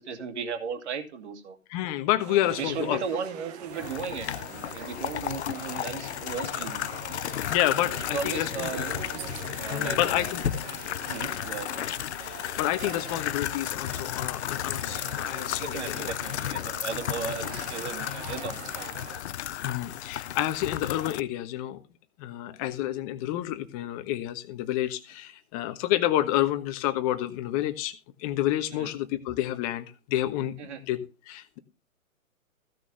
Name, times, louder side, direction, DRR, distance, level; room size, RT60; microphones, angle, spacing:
voice 1, 0.0-1.6 2.3-6.9 7.7-9.0 9.6-10.3 11.1-11.7 15.6-19.1 28.7-28.9 30.6-30.8, right 6 dB, 50° right, 8 dB, 2.5 m, -36 dB
voice 2, 1.7-3.0 7.5-8.7 9.7-10.4 12.1-16.1 19.6-21.8 22.2-27.9 28.2-30.6 30.9-31.0 31.3-31.6, left 14 dB, 25° left, 10 dB, 1.2 m, -29 dB
sound 1, 2.2-19.2, right 9 dB, 30° right, 1.1 m, -44 dB
sound 2, 3.7-21.2, left 11 dB, 50° left, 0.6 m, -34 dB
sound 3, 7.0-19.6 20.1-20.2, left 7 dB, 85° left, 1.2 m, -43 dB
15.0 x 6.2 x 5.5 m, 0.30 s
hypercardioid pair, 140°, 43 cm